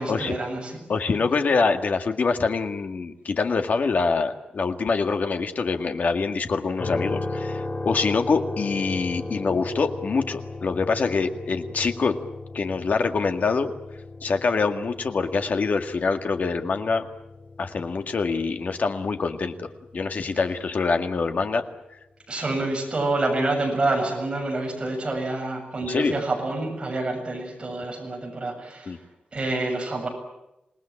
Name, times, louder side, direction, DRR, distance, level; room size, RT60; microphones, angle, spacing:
voice 1, 0.0-0.8 22.3-28.9 29.3-30.1, right 2 dB, 30° right, 1 dB, 7.5 m, -27 dB
voice 2, 0.9-12.2 12.5-13.7 14.2-17.0 17.6-21.6 25.9-26.2 28.9-29.0, left 4 dB, 60° left, 6 dB, 1.9 m, -25 dB
sound 1, 6.8-20.8, left 2 dB, 45° left, 5.4 m, -36 dB
27.0 x 19.0 x 8.9 m, 0.95 s
wide cardioid pair, 170°, 3 cm